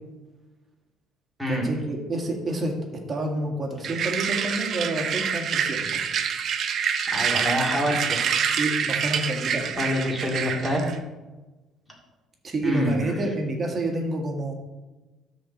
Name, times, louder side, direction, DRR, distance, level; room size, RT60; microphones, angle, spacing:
voice 1, 1.5-2.7 3.1-6.0 8.6-9.7 12.4-14.5, right 1 dB, 30° right, 1 dB, 1.8 m, -28 dB
sound 1, 3.8-11.0, right 7 dB, 50° right, 0.6 m, -27 dB
voice 2, 7.0-8.3 9.8-10.8 12.6-13.2, equal, ahead, -3 dB, 2.3 m, -26 dB
12.5 x 4.3 x 4.0 m, 1.1 s
cardioid pair, 130°, 0 cm